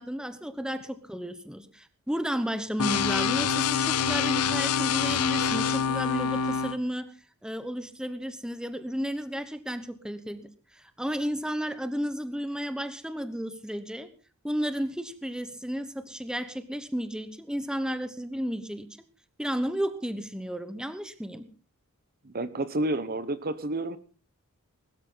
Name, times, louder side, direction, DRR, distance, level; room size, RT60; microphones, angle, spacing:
voice 1, 0.0-7.1 7.4-14.1 14.4-18.9 19.4-21.5, equal, 5° right, 11 dB, 1.1 m, -33 dB
sound 1, 2.8-6.8, left 6 dB, 85° left, 0.8 m, -26 dB
voice 2, 22.2-24.0, right 1 dB, 40° right, 14 dB, 1.0 m, -30 dB
20.5 x 13.0 x 3.9 m, 0.35 s
head